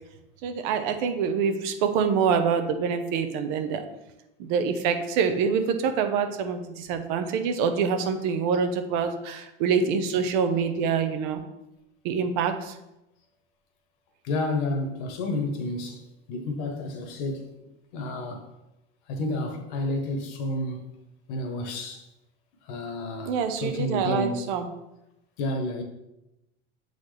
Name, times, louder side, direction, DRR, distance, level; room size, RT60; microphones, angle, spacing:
voice 1, 0.4-3.9 4.4-11.4 12.0-12.7 23.3-24.7, right 6 dB, 55° right, 0.7 m, -26 dB
voice 2, 14.2-16.0 16.3-17.5 17.9-18.4 19.1-20.9 21.3-22.0 22.6-24.4 25.4-25.8, left 2 dB, 55° left, 1.2 m, -30 dB
7.4 x 4.0 x 3.3 m
supercardioid pair, 165°, 30 cm